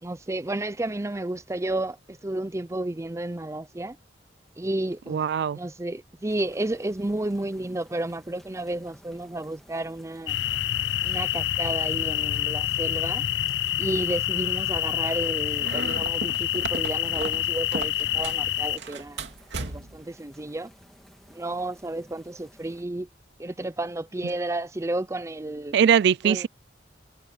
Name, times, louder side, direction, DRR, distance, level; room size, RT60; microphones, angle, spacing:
voice 1, 0.0-4.0 4.6-5.2 5.6-10.4 11.0-13.2 13.8-19.3 19.6-20.7 21.3-23.1 23.4-25.7 26.2-26.5, right 1 dB, 15° right, 0.6 m, -32 dB
voice 2, 5.1-5.6 24.2-24.3 25.7-26.5, right 8 dB, 65° right, 0.3 m, -21 dB
sound 1, 6.3-22.8, equal, ahead, 2.9 m, -55 dB
sound 2, 10.3-18.8, left 12 dB, 75° left, 0.4 m, -27 dB
sound 3, 15.6-18.5 18.8-20.1, right 3 dB, 90° right, 2.4 m, -36 dB
head